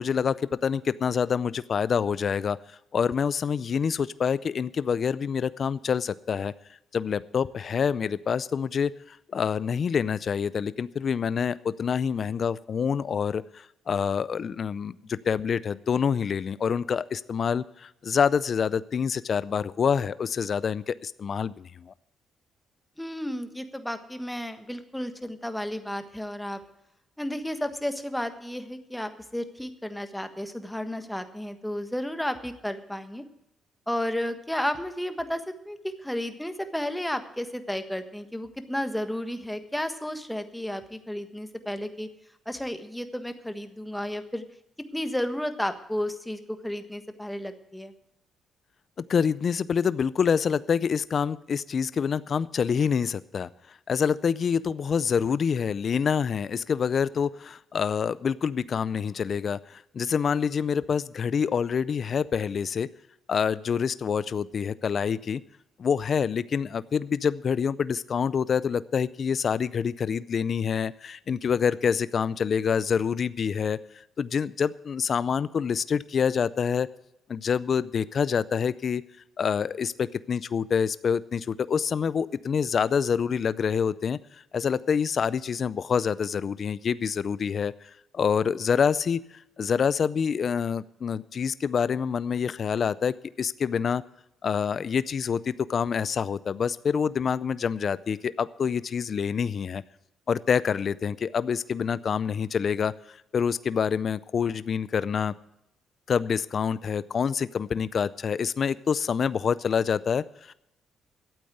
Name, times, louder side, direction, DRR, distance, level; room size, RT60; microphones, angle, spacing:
voice 1, 0.0-2.6 2.9-6.5 6.9-21.9 49.1-62.9 63.3-65.4 65.8-76.9 77.3-79.0 79.4-94.0 94.4-99.8 100.3-105.3 106.1-110.5, left 6 dB, 50° left, 17 dB, 0.4 m, -27 dB
voice 2, 23.0-26.6 27.2-33.2 33.9-42.1 42.4-44.4 44.9-47.9, left 1 dB, 5° left, 8 dB, 1.4 m, -32 dB
12.5 x 8.7 x 7.8 m, 0.83 s
cardioid pair, 90°, 0 cm